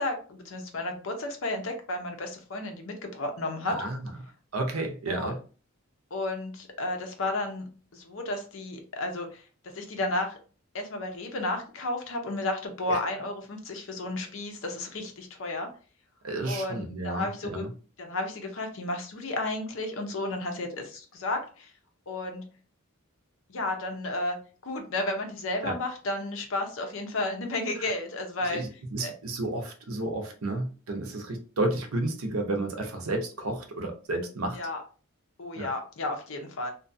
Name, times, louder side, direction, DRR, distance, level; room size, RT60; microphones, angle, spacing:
voice 1, 0.0-3.7 5.1-5.3 6.1-7.6 7.9-9.4 9.7-10.4 10.7-15.7 16.5-17.7 18.0-21.7 22.1-22.4 23.5-24.4 24.6-28.6 29.0-29.1 34.6-34.8 35.4-36.7, left 2 dB, 70° left, 4 dB, 0.6 m, -32 dB
voice 2, 3.7-4.1 4.5-5.4 12.9-13.0 16.2-17.7 25.6-25.8 27.8-27.9 28.4-34.6 35.6-35.7, right 2 dB, 90° right, 4 dB, 0.6 m, -31 dB
2.6 x 2.2 x 2.6 m, 0.37 s
head